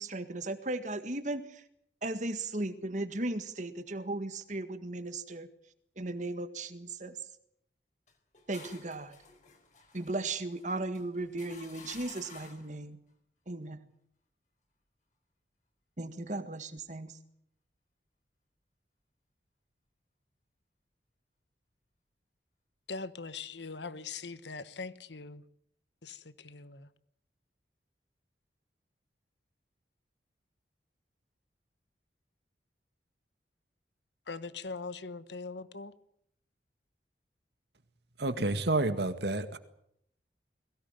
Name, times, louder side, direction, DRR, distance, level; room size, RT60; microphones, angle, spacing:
voice 1, 0.0-1.6 2.0-5.5 6.0-7.2 8.5-9.2 9.9-13.0 13.5-13.9 16.0-17.2, right 2 dB, 45° right, 1.8 m, -36 dB
sound 1, 8.1-12.8, left 4 dB, 45° left, 4.1 m, -53 dB
voice 2, 22.9-25.4 26.0-26.9 34.3-36.0, left 4 dB, 80° left, 1.3 m, -41 dB
voice 3, 38.2-39.6, right 2 dB, 70° right, 1.9 m, -29 dB
22.0 x 17.0 x 9.2 m
head